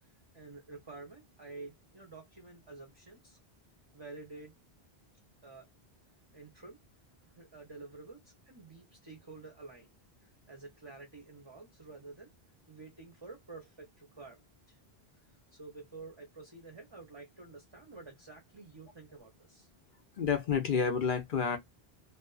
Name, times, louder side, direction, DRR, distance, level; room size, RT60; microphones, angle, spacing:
voice 1, 0.0-3.4 3.9-4.6 5.4-5.7 6.3-6.8 7.3-9.9 10.2-12.3 12.7-14.8 15.2-19.7, right 3 dB, 30° right, 0.6 m, -50 dB
voice 2, 20.2-21.6, left 6 dB, 60° left, 0.7 m, -29 dB
2.4 x 2.4 x 2.2 m
omnidirectional pair, 1.0 m